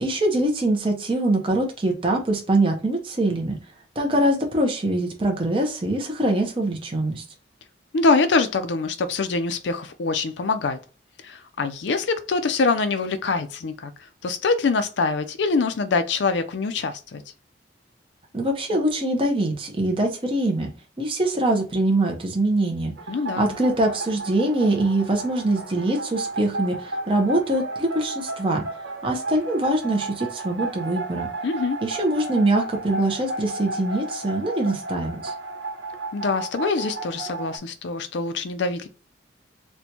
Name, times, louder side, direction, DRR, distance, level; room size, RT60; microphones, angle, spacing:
voice 1, 0.0-3.6 4.0-7.2 18.3-20.7 21.0-22.9 23.4-28.6 29.0-31.3 31.8-35.3, right 1 dB, 30° right, 0.6 m, -23 dB
voice 2, 7.9-10.8 11.2-13.9 14.2-17.2 23.1-23.5 31.4-31.8 36.1-38.9, left 4 dB, 75° left, 0.4 m, -24 dB
sound 1, 23.0-37.6, right 2 dB, 85° right, 1.0 m, -33 dB
4.3 x 2.2 x 2.8 m
head